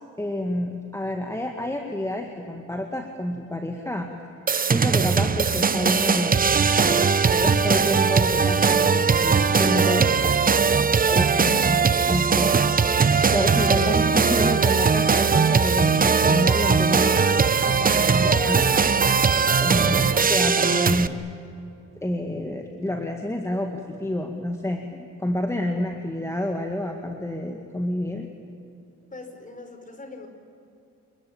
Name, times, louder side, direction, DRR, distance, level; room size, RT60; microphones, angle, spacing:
voice 1, 0.2-4.1 4.6-6.4 6.8-10.2 11.1-11.8 12.1-12.6 13.3-17.3 17.7-19.1 19.6-21.2 22.0-28.3, left 1 dB, 10° left, 3 dB, 2.1 m, -29 dB
sound 1, 4.5-21.1, right 5 dB, 30° right, 0.9 m, -20 dB
voice 2, 29.1-30.3, left 3 dB, 25° left, 6 dB, 5.1 m, -44 dB
29.0 x 22.0 x 8.8 m, 2.7 s
cardioid pair, 90°, 30 cm